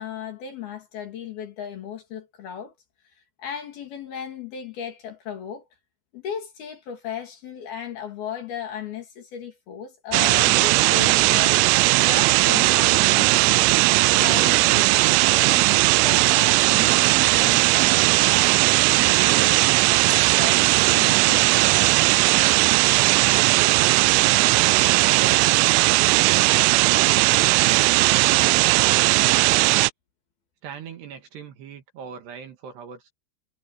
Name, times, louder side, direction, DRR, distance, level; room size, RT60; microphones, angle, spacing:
voice 1, 0.0-2.7 3.4-5.6 6.1-13.8 14.1-18.5 19.0-21.5, left 8 dB, 55° left, 3.8 m, -36 dB
sound 1, 10.1-29.9, right 24 dB, 85° right, 2.9 m, -18 dB
voice 2, 24.4-25.5 26.1-29.5 30.6-33.1, right 7 dB, 60° right, 3.5 m, -40 dB
omnidirectional pair, 6.0 m